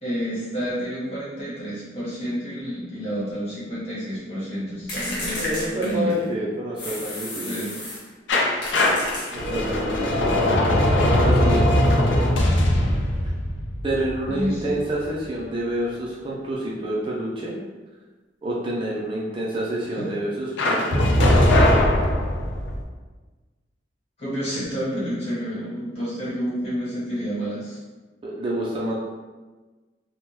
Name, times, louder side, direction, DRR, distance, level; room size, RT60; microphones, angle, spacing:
voice 1, 0.0-6.2 7.5-7.7 14.3-14.6 19.9-20.1 24.2-27.8, equal, 35° left, -9 dB, 1.3 m, -29 dB
sound 1, 4.9-6.3 6.8-8.1 8.6-9.7, left 1 dB, 65° left, 1.0 m, -32 dB
voice 2, 5.4-7.5 9.3-11.8 13.8-17.5 18.4-21.7 28.2-28.9, right 1 dB, 30° right, -5 dB, 0.4 m, -28 dB
sound 2, 8.3-15.1 20.6-22.8, left 1 dB, 85° left, 0.5 m, -20 dB
3.5 x 2.1 x 2.9 m, 1.3 s
head